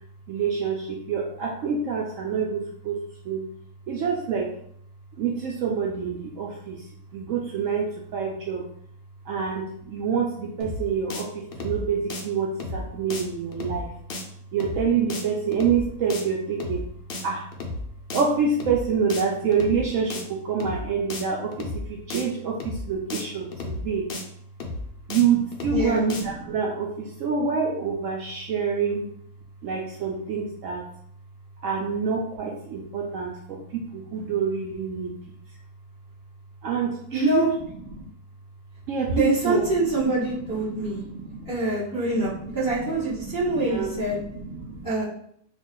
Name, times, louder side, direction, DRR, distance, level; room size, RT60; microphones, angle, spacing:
voice 1, 0.3-3.0 3.2-3.4 3.9-4.5 5.2-8.7 9.2-13.9 14.5-16.8 17.2-17.5 18.1-24.1 25.1-29.1 29.6-30.9 31.6-35.4 36.6-37.5 37.9-38.1 38.9-41.5 42.1-44.9, right 6 dB, 70° right, -1 dB, 0.8 m, -27 dB
sound 1, 10.6-10.8 11.1-11.2 11.5-11.8 12.1-12.2 12.6-12.8 13.1-13.2 13.5-13.8 14.1-14.2 14.6-14.8 15.1-15.2 15.5-15.8 16.1-16.2 16.6-16.8 17.1-17.2 17.5-17.8 18.1-18.2 18.6-18.8 19.1-19.2 19.5-19.8 20.1-20.2 20.6-20.8 21.1-21.2 21.5-21.8 22.1-22.2 22.6-22.8 23.1-23.2 23.5-23.8 24.1-24.2 24.6-24.8 25.1-25.2 25.5-25.8 26.1-26.2, left 2 dB, 70° left, 0.5 m, -33 dB
voice 2, 25.7-26.0 37.1-37.5 39.1-41.0 41.5-44.2 44.8-45.0, right 2 dB, 15° left, -9 dB, 0.8 m, -25 dB
3.4 x 2.3 x 3.7 m, 0.68 s
omnidirectional pair, 1.7 m